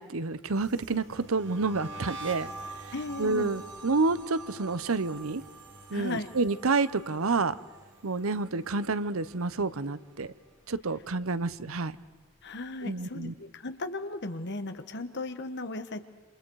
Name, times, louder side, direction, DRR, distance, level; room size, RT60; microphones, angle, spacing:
voice 1, 0.0-2.5 3.2-5.4 5.9-7.5 8.0-10.3 10.7-12.0 12.8-13.3, right 3 dB, 80° right, 15 dB, 0.9 m, -29 dB
sound 1, 0.6-9.8 10.0-10.5 10.8-12.3, right 2 dB, 60° right, 3.0 m, -46 dB
voice 2, 2.9-3.5 5.9-6.3 12.4-16.0, left 2 dB, 55° left, 9 dB, 1.5 m, -36 dB
28.5 x 28.0 x 4.8 m, 1.3 s
head